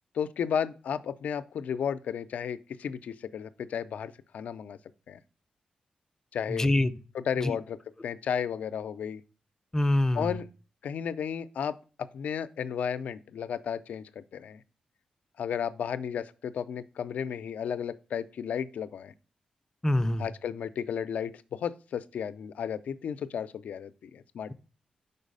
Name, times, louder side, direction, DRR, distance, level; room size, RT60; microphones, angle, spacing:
voice 1, 0.1-4.8 5.1-5.2 6.3-6.7 7.1-7.8 8.0-9.2 10.1-10.5 10.8-14.6 15.4-19.1 20.2-24.5, left 8 dB, 85° left, 0.4 m, -33 dB
voice 2, 6.5-6.9 7.4-7.6 9.7-10.3 19.8-20.2, left 1 dB, 20° left, 0.5 m, -25 dB
5.5 x 4.0 x 5.2 m
cardioid pair, 75°, 2 cm